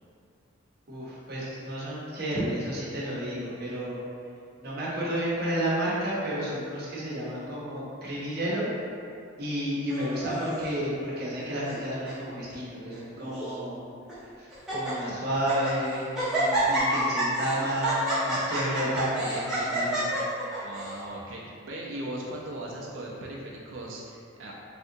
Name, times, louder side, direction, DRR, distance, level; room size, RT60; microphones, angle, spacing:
voice 1, 0.9-4.0 4.6-8.7 9.4-13.9 14.2-16.1 16.3-17.9 18.2-20.2, right 1 dB, 50° right, -7 dB, 0.7 m, -31 dB
Laughter, 9.9-10.7 11.4-11.8 12.1-12.2 12.9-13.5 14.1-14.2 14.5-14.9 15.3-15.8 16.1-20.9, right 1 dB, 5° right, 0.7 m, -29 dB
voice 2, 20.6-24.5, right 1 dB, 70° right, -3 dB, 0.4 m, -38 dB
3.3 x 2.7 x 2.6 m, 2.4 s
head